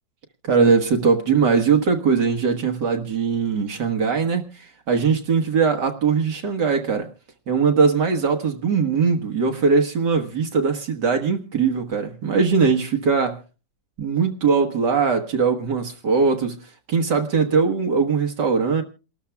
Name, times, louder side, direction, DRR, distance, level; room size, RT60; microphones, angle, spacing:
voice 1, 0.4-7.1 7.5-13.4 14.0-16.6 16.9-18.8, right 5 dB, 65° right, 4 dB, 2.0 m, -20 dB
29.0 x 13.0 x 2.2 m, 0.32 s
omnidirectional pair, 2.0 m